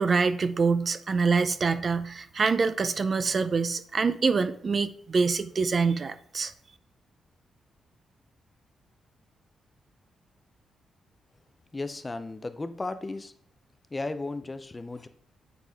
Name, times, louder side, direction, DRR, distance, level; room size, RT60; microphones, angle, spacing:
voice 1, 0.0-6.5, right 4 dB, 40° right, 12 dB, 0.5 m, -25 dB
voice 2, 11.7-13.3 13.9-15.1, left 2 dB, 20° left, 11 dB, 0.5 m, -35 dB
9.2 x 4.0 x 3.5 m, 0.64 s
cardioid pair, 100°, 0 cm